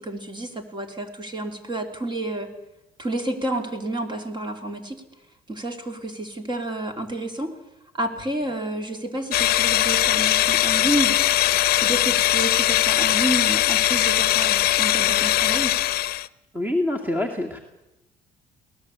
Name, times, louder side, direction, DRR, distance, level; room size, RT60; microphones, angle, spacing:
voice 1, 0.0-2.5 3.0-5.0 5.5-7.5 7.9-11.1 11.8-15.7, right 1 dB, 25° right, 6 dB, 3.2 m, -29 dB
sound 1, 9.3-16.3, left 14 dB, 65° left, 0.7 m, -20 dB
voice 2, 16.5-17.6, left 1 dB, 10° right, 4 dB, 2.4 m, -26 dB
22.0 x 18.5 x 8.2 m, 0.94 s
cardioid pair, 110°, 17 cm